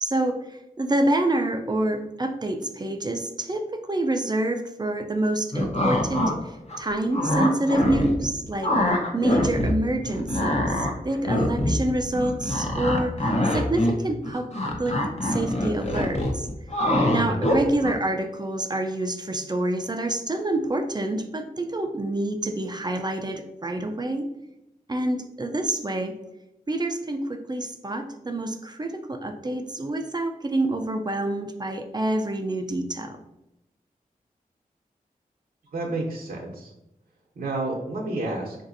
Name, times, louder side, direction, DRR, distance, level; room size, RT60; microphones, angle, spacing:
voice 1, 0.0-8.7 9.1-14.5 14.8-16.5 17.1-24.3 24.9-26.2 26.7-33.2, right 1 dB, 25° right, 5 dB, 0.4 m, -27 dB
sound 1, 5.5-6.3 6.7-8.3 8.6-9.7 10.0-17.9, left 1 dB, 45° left, 0.8 m, -24 dB
voice 2, 17.3-17.8 35.7-36.7 37.4-38.6, right 2 dB, 65° right, -4 dB, 0.8 m, -31 dB
3.9 x 2.6 x 2.6 m, 0.89 s
cardioid pair, 45°, 16 cm